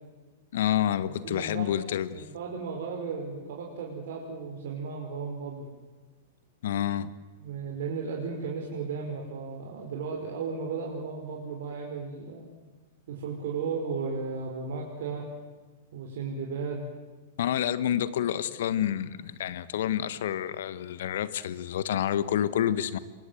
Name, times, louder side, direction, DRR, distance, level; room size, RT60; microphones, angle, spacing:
voice 1, 0.5-2.2 6.6-7.1 17.4-23.0, left 10 dB, 65° left, 15 dB, 1.5 m, -28 dB
voice 2, 1.2-1.8 2.1-5.7 7.4-12.5 13.1-15.3 15.9-16.9, right 5 dB, 60° right, -1 dB, 5.4 m, -35 dB
28.0 x 23.5 x 8.0 m, 1.3 s
figure-of-eight pair, 105°, 0 cm